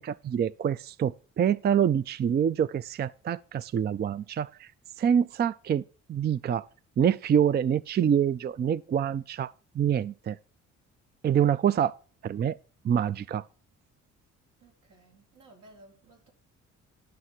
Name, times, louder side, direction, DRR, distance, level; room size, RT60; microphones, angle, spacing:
voice 1, 0.0-4.7 5.0-5.8 6.1-6.7 7.0-10.4 11.2-11.9 12.2-12.6 12.8-13.4, right 8 dB, 35° right, 0.4 m, -26 dB
voice 2, 14.6-16.3, right 2 dB, 90° right, 4.9 m, -56 dB
11.0 x 6.5 x 4.4 m
cardioid pair, 90°, 30 cm